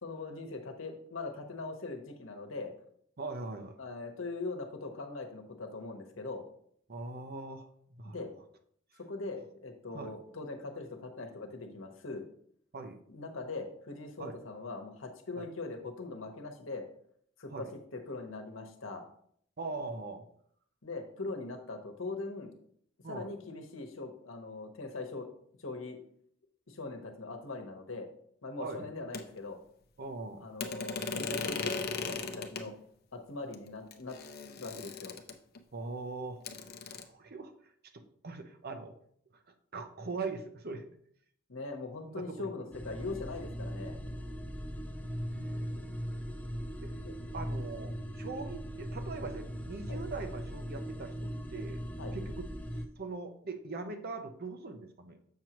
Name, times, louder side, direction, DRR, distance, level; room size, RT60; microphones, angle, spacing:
voice 1, 0.0-2.7 3.8-6.4 8.0-8.3 9.1-12.2 13.1-16.8 17.4-17.7 17.9-19.0 20.8-22.5 23.1-25.3 25.6-26.0 26.7-28.1 28.4-29.6 30.4-31.8 32.1-32.7 33.1-34.2 34.6-35.1 41.5-44.0 47.0-47.2 49.9-50.0 52.0-52.1, left 3 dB, 75° left, 4 dB, 1.1 m, -41 dB
voice 2, 3.2-3.8 6.9-7.7 7.9-8.2 9.9-10.1 12.7-13.0 14.2-14.4 15.4-15.5 17.5-17.7 19.6-20.2 23.0-23.3 28.6-28.9 30.0-30.5 35.7-36.4 36.9-37.5 38.2-38.9 39.7-40.9 42.0-42.7 45.3-46.0 46.8-46.9 47.3-51.8 52.1-52.4 53.0-55.2, right 3 dB, 50° right, 7 dB, 0.7 m, -41 dB
sound 1, 29.1-29.2 30.6-32.7 33.5-33.6 33.9-35.6 36.4-37.0, left 4 dB, 50° left, 0.6 m, -37 dB
sound 2, 42.7-52.9, equal, 10° left, 0.6 m, -39 dB
7.4 x 6.1 x 3.0 m, 0.64 s
head